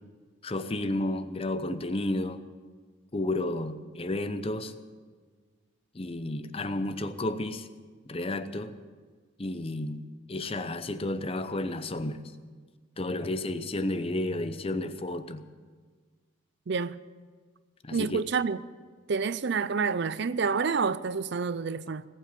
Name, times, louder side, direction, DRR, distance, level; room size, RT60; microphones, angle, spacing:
voice 1, 0.4-2.4 3.1-4.7 5.9-7.7 8.1-8.7 9.4-10.0 10.3-12.2 13.0-15.4 17.8-18.2, left 1 dB, 30° left, 11 dB, 0.7 m, -32 dB
voice 2, 16.7-17.0 17.9-18.6 19.1-22.1, right 5 dB, 55° right, 16 dB, 0.5 m, -28 dB
19.0 x 8.6 x 8.3 m, 1.5 s
head